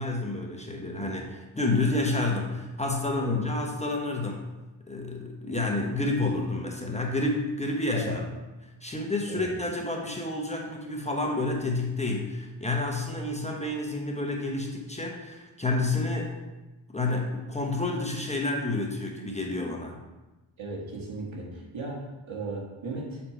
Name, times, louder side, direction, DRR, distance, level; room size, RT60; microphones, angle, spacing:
voice 1, 0.0-4.4 4.9-8.2 8.8-16.3 16.9-20.0, left 2 dB, 15° left, 0 dB, 1.0 m, -29 dB
voice 2, 20.6-23.2, right 3 dB, 75° right, -2 dB, 1.8 m, -36 dB
6.7 x 4.4 x 4.4 m, 1.1 s
cardioid pair, 85°, 47 cm